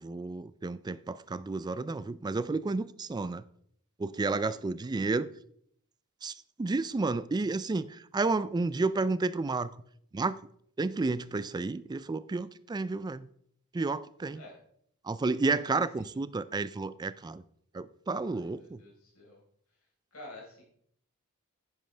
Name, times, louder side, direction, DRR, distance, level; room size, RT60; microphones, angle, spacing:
voice 1, 0.0-3.4 4.0-5.3 6.2-6.3 6.6-9.7 10.1-10.4 10.8-13.3 13.7-14.4 15.0-17.4 17.7-18.8, right 3 dB, 20° right, 0.3 m, -31 dB
voice 2, 4.2-4.6 14.3-14.6 15.6-16.2 18.3-19.4 20.1-20.6, left 2 dB, 75° left, 4.4 m, -50 dB
10.5 x 9.3 x 3.3 m
head